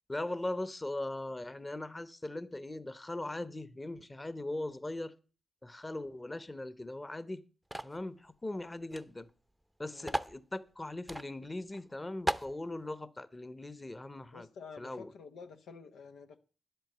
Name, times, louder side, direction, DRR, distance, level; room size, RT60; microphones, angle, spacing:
voice 1, 0.1-5.1 5.6-7.4 7.8-9.3 9.8-14.5 14.8-15.1, left 2 dB, 25° left, 1.0 m, -40 dB
sound 1, 7.7-8.0 8.9-9.0 9.3-9.4 10.1-10.4 11.1-11.3 11.7-11.8 12.3-12.5, right 1 dB, 5° right, 0.7 m, -34 dB
voice 2, 9.9-10.2 14.3-16.4, left 5 dB, 85° left, 1.0 m, -49 dB
10.5 x 8.1 x 8.0 m
cardioid pair, 50°, 0 cm